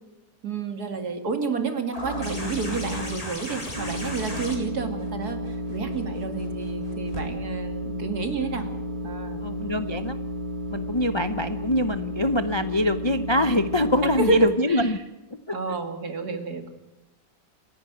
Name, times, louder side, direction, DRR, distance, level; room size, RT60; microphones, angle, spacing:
voice 1, 0.4-8.7 9.0-9.4 14.2-14.9 15.5-16.7, right 4 dB, 65° right, 7 dB, 2.8 m, -30 dB
sound 1, 1.9-7.2 8.6-8.7, left 1 dB, 20° left, 3.6 m, -37 dB
sound 2, 2.0-3.2 3.7-14.5, equal, 30° right, 1.8 m, -32 dB
voice 2, 9.4-10.2 10.7-15.0 15.5-15.7, left 1 dB, 40° left, 10 dB, 0.4 m, -24 dB
27.5 x 11.0 x 9.0 m, 0.99 s
omnidirectional pair, 1.8 m